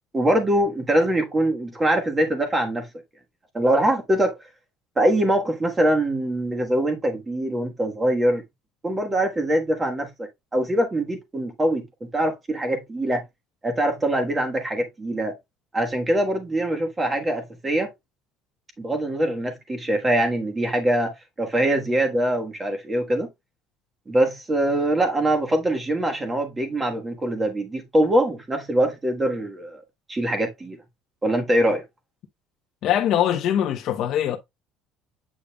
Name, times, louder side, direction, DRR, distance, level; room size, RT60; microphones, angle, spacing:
voice 1, 0.1-2.9 3.5-4.3 5.0-8.4 8.8-13.2 13.6-15.3 15.7-17.9 18.8-23.3 24.1-29.8 30.1-30.8 31.2-31.8, right 1 dB, 15° right, 1.3 m, -23 dB
voice 2, 32.8-34.4, left 10 dB, 50° left, 0.8 m, -22 dB
8.5 x 5.1 x 2.3 m
cardioid pair, 160°, 0 cm